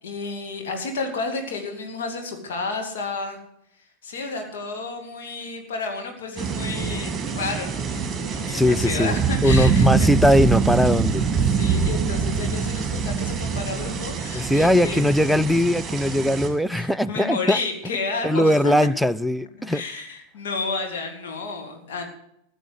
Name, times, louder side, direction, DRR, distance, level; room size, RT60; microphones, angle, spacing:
voice 1, 0.0-3.4 4.0-10.1 11.5-15.0 16.7-18.7 19.6-22.0, left 4 dB, 60° left, 2.7 m, -31 dB
sound 1, 6.4-16.5, right 6 dB, 15° right, 2.9 m, -24 dB
voice 2, 8.5-11.2 14.3-17.6 18.2-19.8, left 1 dB, ahead, 0.4 m, -20 dB
15.0 x 7.6 x 8.2 m
figure-of-eight pair, 90°, 0 cm